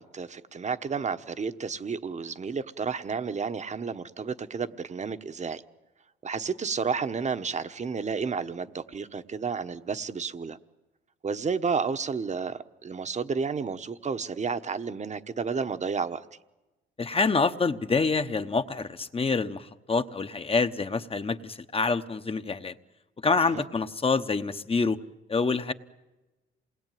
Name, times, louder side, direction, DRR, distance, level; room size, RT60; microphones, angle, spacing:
voice 1, 0.0-5.6 6.2-10.6 11.2-16.2 23.4-23.6, right 5 dB, 35° right, 1.2 m, -31 dB
voice 2, 17.0-22.7 23.2-25.0 25.3-25.7, left 4 dB, 30° left, 1.1 m, -26 dB
27.5 x 20.5 x 9.3 m
cardioid pair, 90°, 20 cm